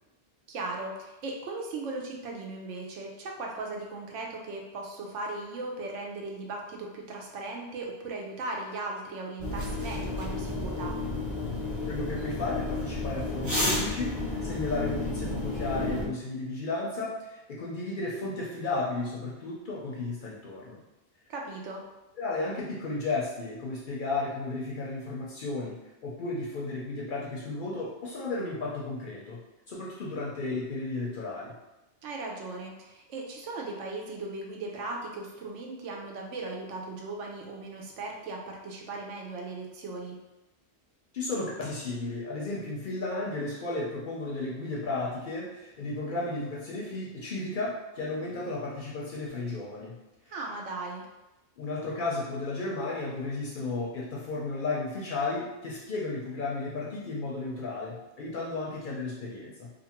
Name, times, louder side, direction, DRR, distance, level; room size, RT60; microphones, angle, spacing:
voice 1, 0.5-11.0 21.3-21.8 32.0-40.2 50.3-51.1, right 2 dB, 90° right, 0 dB, 0.9 m, -37 dB
sound 1, 9.4-16.1, left 2 dB, 25° right, 0.7 m, -31 dB
voice 2, 11.9-14.1 14.4-20.8 22.2-25.8 26.0-29.4 29.7-31.5 41.1-50.0 51.6-59.7, left 2 dB, 60° left, -4 dB, 0.6 m, -34 dB
2.5 x 2.5 x 2.8 m, 1.0 s
omnidirectional pair, 1.2 m